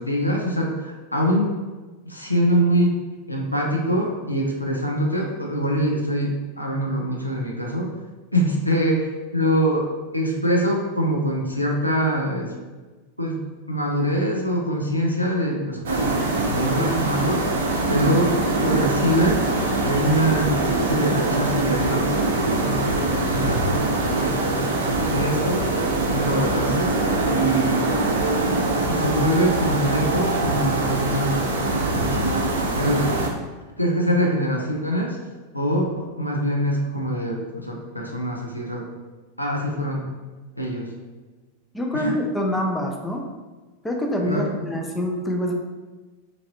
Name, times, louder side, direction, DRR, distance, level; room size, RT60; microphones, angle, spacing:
voice 1, 0.0-1.5 2.1-3.0 3.3-7.9 8.3-12.5 13.2-13.4 13.7-16.1 16.5-17.5 17.9-19.5 19.8-22.1 22.5-23.8 24.1-25.7 26.1-26.9 27.3-27.9 28.4-28.6 28.8-32.3 32.8-33.1 33.8-35.2 35.5-38.8 39.4-40.0 40.6-40.9 41.9-42.1 44.2-44.5, equal, 85° left, -1 dB, 0.5 m, -24 dB
sound 1, 15.8-33.3, right 2 dB, 65° right, 0.4 m, -23 dB
voice 2, 41.7-43.2 43.8-45.5, left 1 dB, 10° left, 1 dB, 0.4 m, -25 dB
3.0 x 2.5 x 2.7 m, 1.3 s
figure-of-eight pair, 90°, 0 cm